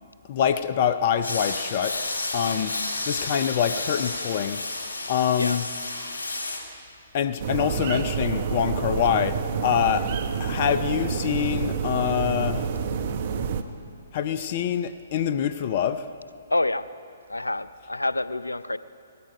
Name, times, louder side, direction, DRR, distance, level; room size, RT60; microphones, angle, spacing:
voice 1, 0.3-2.0 2.3-2.7 3.1-4.6 5.1-5.6 7.1-10.1 10.4-12.7 14.1-16.1, left 8 dB, 45° left, 0.6 m, -25 dB
sound 1, 1.2-6.6, left 2 dB, 70° left, 3.5 m, -31 dB
sound 2, 7.4-13.6, right 6 dB, 45° right, 0.9 m, -28 dB
voice 2, 16.5-16.9 17.3-18.8, left 2 dB, 90° left, 0.5 m, -27 dB
18.0 x 13.5 x 5.5 m
figure-of-eight pair, 130°, 0 cm